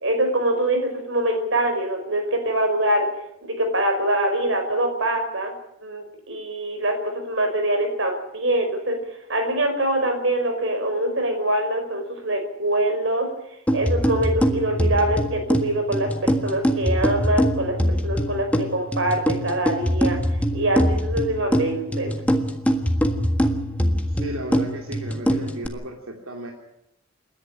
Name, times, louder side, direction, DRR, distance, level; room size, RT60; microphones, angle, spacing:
voice 1, 0.0-3.1 3.4-5.5 5.8-9.0 9.3-13.3 13.7-17.8 18.0-20.2 20.5-22.1, right 1 dB, 65° right, 5 dB, 5.2 m, -24 dB
sound 1, 13.7-25.7, equal, 5° left, 1.5 m, -23 dB
voice 2, 24.1-26.5, right 1 dB, 85° right, 1 dB, 3.0 m, -34 dB
28.5 x 11.0 x 9.9 m, 0.80 s
head